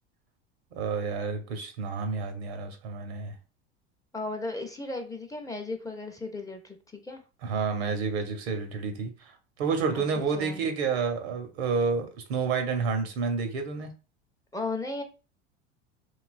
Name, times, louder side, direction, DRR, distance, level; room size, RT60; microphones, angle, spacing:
voice 1, 0.8-3.3 7.4-9.3 9.6-13.9, right 5 dB, 75° right, 6 dB, 0.7 m, -29 dB
voice 2, 4.1-6.8 7.0-7.2 9.9-10.0 10.3-10.6 14.5-15.0, left 2 dB, 10° left, 4 dB, 0.5 m, -35 dB
2.9 x 2.2 x 2.5 m, 0.33 s
hypercardioid pair, 80°, 33 cm